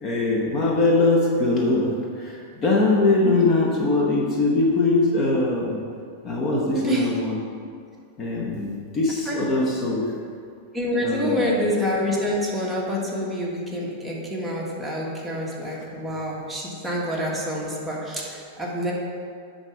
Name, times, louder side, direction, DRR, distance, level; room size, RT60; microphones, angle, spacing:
voice 1, 0.0-5.8 6.2-7.4 8.2-10.1 11.0-11.5, left 2 dB, 30° left, -1 dB, 1.0 m, -22 dB
voice 2, 6.7-7.1 9.3-9.4 10.7-18.9, equal, 5° right, -5 dB, 1.4 m, -27 dB
9.7 x 4.1 x 4.8 m, 2.3 s
hypercardioid pair, 130°, 0 cm